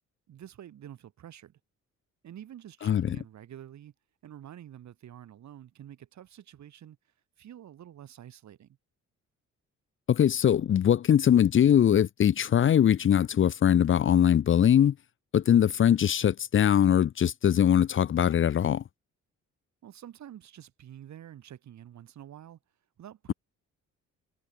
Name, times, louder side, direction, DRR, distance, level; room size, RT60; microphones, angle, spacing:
voice 1, 0.3-1.6 2.2-3.9 4.2-7.0 7.4-8.8 19.8-22.6 23.0-23.3, right 11 dB, 65° right, 3.3 m, -48 dB
voice 2, 2.8-3.2 10.1-14.9 15.3-18.8, left 9 dB, 40° left, 0.6 m, -22 dB
cardioid pair, 90°, 30 cm